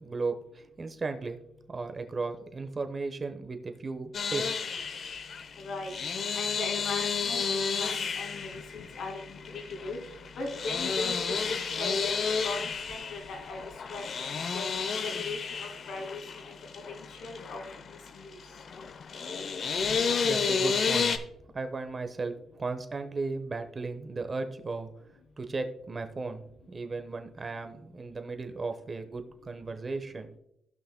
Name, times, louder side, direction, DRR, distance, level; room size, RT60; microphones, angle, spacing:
voice 1, 0.0-1.4 1.7-4.9 20.2-21.2 21.5-24.9 25.4-30.4, right 3 dB, 30° right, 7 dB, 1.0 m, -36 dB
sound 1, 4.1-21.2, left 5 dB, 55° left, 0.7 m, -32 dB
voice 2, 5.6-5.9 6.3-10.0 10.4-11.2 11.5-12.1 12.4-13.6 13.9-14.6 15.0-16.6 16.9-17.6 17.9-18.3, left 3 dB, 70° left, 3 dB, 2.3 m, -39 dB
16.0 x 5.8 x 2.2 m, 0.80 s
cardioid pair, 90°, 0 cm